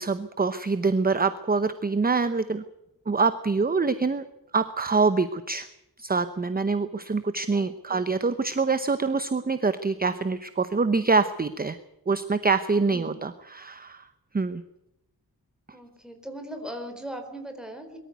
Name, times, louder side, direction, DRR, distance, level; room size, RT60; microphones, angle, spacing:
voice 1, 0.0-2.6 3.1-4.3 4.5-5.7 6.0-11.8 12.1-14.0 14.3-14.6, right 4 dB, 25° right, 11 dB, 0.8 m, -25 dB
voice 2, 7.5-8.0 12.9-13.2 15.7-18.0, right 1 dB, ahead, 5 dB, 4.2 m, -39 dB
22.5 x 14.0 x 9.3 m, 0.88 s
wide cardioid pair, 170°, 38 cm